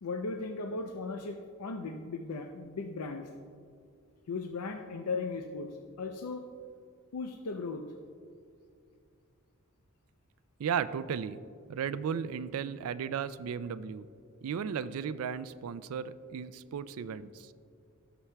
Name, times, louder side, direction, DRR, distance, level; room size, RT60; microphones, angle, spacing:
voice 1, 0.0-3.3 4.3-6.4 7.1-7.8, left 3 dB, 85° left, 4 dB, 0.5 m, -37 dB
voice 2, 10.6-11.4 11.7-14.1 14.4-17.5, right 7 dB, 65° right, 14 dB, 0.3 m, -35 dB
16.0 x 6.9 x 2.2 m, 2.3 s
head